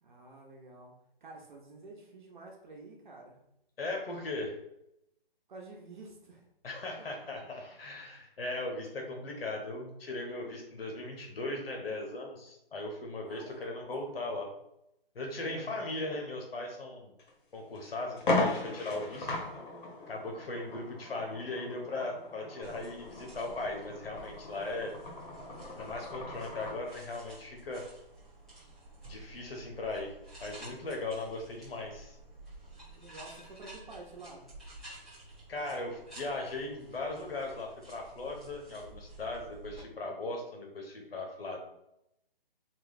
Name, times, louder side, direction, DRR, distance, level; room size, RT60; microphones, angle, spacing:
voice 1, 0.0-0.9 1.2-3.4 5.5-6.5 8.0-8.2 13.2-14.4 15.4-15.9 32.9-34.5, right 2 dB, 50° right, 0 dB, 0.9 m, -50 dB
voice 2, 3.8-4.6 6.6-14.5 15.1-17.1 17.5-19.3 20.1-24.9 25.8-27.8 29.0-30.1 30.4-32.2 35.5-41.6, left 2 dB, 75° left, 1 dB, 1.2 m, -38 dB
sound 1, 17.2-17.3 17.7-17.8 18.2-26.8, left 2 dB, 55° left, 1.0 m, -37 dB
sound 2, 22.6-39.8, right 2 dB, ahead, 0.3 m, -52 dB
3.8 x 2.3 x 4.0 m, 0.82 s
hypercardioid pair, 165°, 30 cm